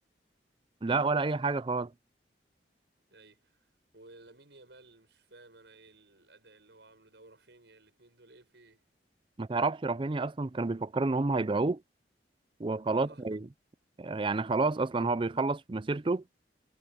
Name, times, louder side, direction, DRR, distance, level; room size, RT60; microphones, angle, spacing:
voice 1, 0.8-1.9 9.4-11.8 12.6-13.5 14.0-16.2, right 3 dB, 30° right, 0.5 m, -29 dB
voice 2, 3.1-8.8 12.9-13.4, right 2 dB, 75° right, 6.8 m, -57 dB
head